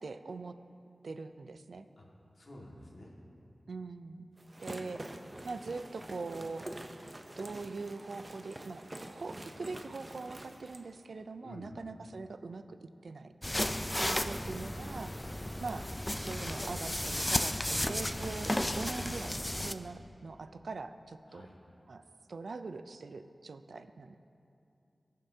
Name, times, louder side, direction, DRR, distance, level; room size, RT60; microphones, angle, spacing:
voice 1, 0.0-0.6 1.0-1.9 3.7-4.3 4.6-5.0 5.4-6.7 7.4-13.3 14.0-15.1 15.6-15.9 16.2-21.5 21.9-22.0 22.3-24.2, right 3 dB, 80° right, 10 dB, 0.4 m, -42 dB
voice 2, 2.3-3.1 11.4-11.7 21.3-21.6, left 1 dB, 55° left, -2 dB, 1.7 m, -50 dB
sound 1, 4.4-10.8, right 1 dB, 25° right, 0.6 m, -46 dB
sound 2, 13.4-19.7, left 1 dB, 10° left, 0.4 m, -34 dB
20.0 x 7.3 x 2.7 m, 2.6 s
wide cardioid pair, 100°, 0 cm